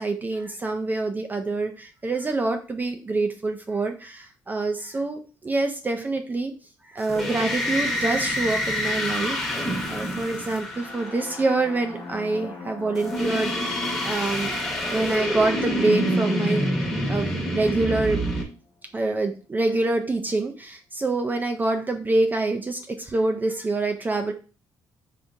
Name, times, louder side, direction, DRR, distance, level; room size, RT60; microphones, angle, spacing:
voice 1, 0.0-6.5 6.8-14.5 14.9-18.2 18.9-24.3, right 2 dB, 25° right, 4 dB, 0.4 m, -26 dB
sound 1, 7.0-11.5 13.0-18.4, equal, 5° left, 1.0 m, -27 dB
sound 2, 10.6-18.5, left 4 dB, 55° left, 0.7 m, -42 dB
3.5 x 2.8 x 2.6 m, 0.36 s
cardioid pair, 85°, 8 cm